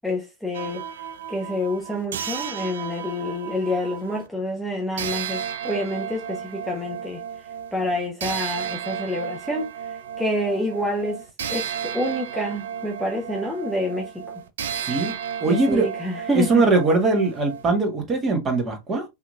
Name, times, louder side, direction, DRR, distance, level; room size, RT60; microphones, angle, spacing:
voice 1, 0.0-0.8 1.3-7.2 7.7-9.7 10.2-11.2 11.5-14.1 15.5-16.6, left 1 dB, ahead, 1.0 m, -27 dB
sound 1, 0.5-4.3 5.0-17.7, right 8 dB, 60° right, 0.5 m, -33 dB
voice 2, 14.8-15.1 15.4-15.9 16.3-19.0, right 3 dB, 25° right, 1.7 m, -21 dB
5.5 x 3.1 x 2.5 m
figure-of-eight pair, 90°, 0 cm